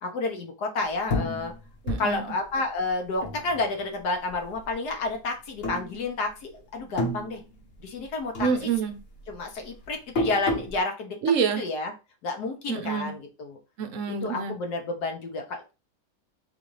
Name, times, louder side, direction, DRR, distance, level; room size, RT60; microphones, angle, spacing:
voice 1, 0.0-1.5 2.0-7.4 7.8-8.7 9.3-11.1 11.6-11.9 12.2-13.6 14.2-15.7, left 3 dB, 75° left, 1.5 m, -30 dB
sound 1, 1.1-4.0 4.3-5.1 5.6-6.5 6.7-8.1 8.3-10.8, left 2 dB, 55° left, 1.4 m, -32 dB
voice 2, 1.9-2.2 8.4-9.0 11.2-11.6 12.7-13.2 13.8-14.6, right 6 dB, 65° right, 0.8 m, -27 dB
4.0 x 3.9 x 3.1 m
omnidirectional pair, 1.8 m